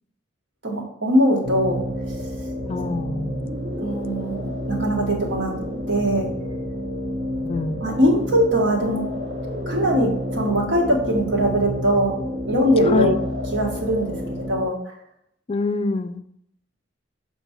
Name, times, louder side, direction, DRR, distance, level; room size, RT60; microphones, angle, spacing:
voice 1, 0.6-1.8 3.8-5.5 5.9-6.3 7.8-9.1 9.7-12.2 12.5-13.1 13.5-14.2 14.5-14.8, equal, 80° right, 0 dB, 1.7 m, -21 dB
sound 1, 1.4-14.6, equal, 65° right, 1.2 m, -30 dB
voice 2, 2.6-3.5 7.4-7.8 12.9-13.2 15.5-16.2, left 3 dB, 30° left, 10 dB, 0.3 m, -25 dB
6.9 x 4.3 x 4.6 m, 0.76 s
head